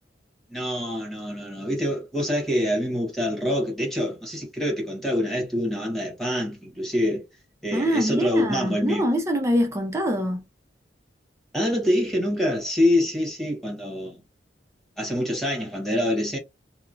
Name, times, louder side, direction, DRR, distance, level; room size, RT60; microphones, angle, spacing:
voice 1, 0.5-7.2 7.6-9.0 11.5-14.2 15.0-16.4, left 1 dB, ahead, 1.1 m, -25 dB
voice 2, 7.7-10.4, equal, 15° right, 0.4 m, -24 dB
2.9 x 2.0 x 2.5 m
head